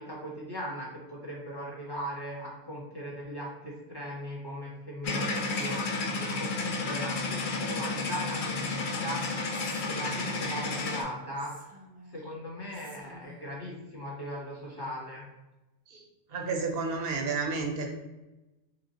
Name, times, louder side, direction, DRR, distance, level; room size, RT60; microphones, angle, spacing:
voice 1, 0.0-8.7 9.0-9.6 9.8-11.8 12.1-15.2, equal, 20° left, -4 dB, 0.9 m, -39 dB
sound 1, 5.0-11.0, left 3 dB, 55° left, 0.6 m, -32 dB
Whispering, 5.4-6.5 7.9-8.6 9.5-10.7 11.4-12.3 12.7-13.6, left 1 dB, 15° right, 0.4 m, -51 dB
voice 2, 16.3-17.9, right 4 dB, 60° right, 2 dB, 0.8 m, -31 dB
3.5 x 3.1 x 2.7 m, 1.0 s
omnidirectional pair, 1.2 m